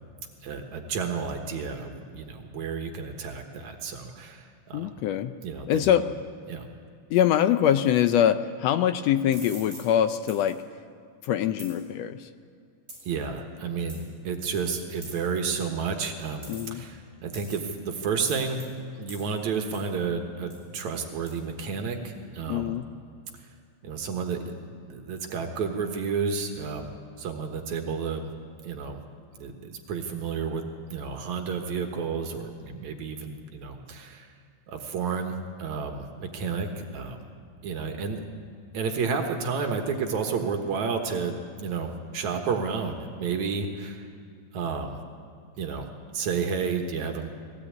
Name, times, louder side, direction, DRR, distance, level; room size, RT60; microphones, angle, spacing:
voice 1, 0.4-4.9 5.4-5.9 6.5-6.7 13.1-18.6 19.0-22.7 23.8-24.5 24.9-28.3 28.6-29.0 29.4-30.6 30.9-34.3 34.7-37.3 37.6-38.2 38.7-44.1 44.5-45.0 45.6-45.9 46.1-47.3, right 5 dB, 75° right, 4 dB, 2.7 m, -31 dB
voice 2, 4.7-5.4 5.7-6.0 7.1-10.6 11.2-12.3 16.5-16.8 22.5-22.9, left 10 dB, 75° left, 10 dB, 1.7 m, -24 dB
sound 1, 9.3-9.9 10.3-10.5 11.6-11.8 12.9-13.1 13.9-14.0 15.0-15.3 16.4-16.8 17.3-17.7 18.3-18.7 19.1-19.3 19.7-19.9 20.5-20.6 21.3-21.4, right 2 dB, 25° right, 6.4 m, -44 dB
20.5 x 16.5 x 8.6 m, 2.4 s
omnidirectional pair, 3.4 m